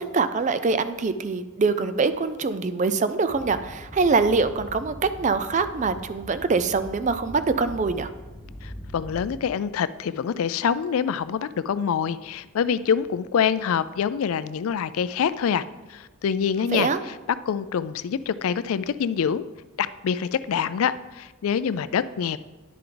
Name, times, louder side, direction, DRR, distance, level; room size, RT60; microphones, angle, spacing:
voice 1, 0.0-8.1 16.7-17.0, right 4 dB, 35° right, 12 dB, 0.4 m, -24 dB
sound 1, 3.3-9.4, equal, 35° left, 1.3 m, -41 dB
voice 2, 8.6-15.6 15.9-17.1 17.5-19.4 19.8-22.4, left 7 dB, 75° left, 15 dB, 0.3 m, -25 dB
10.5 x 6.8 x 3.8 m, 1.2 s
head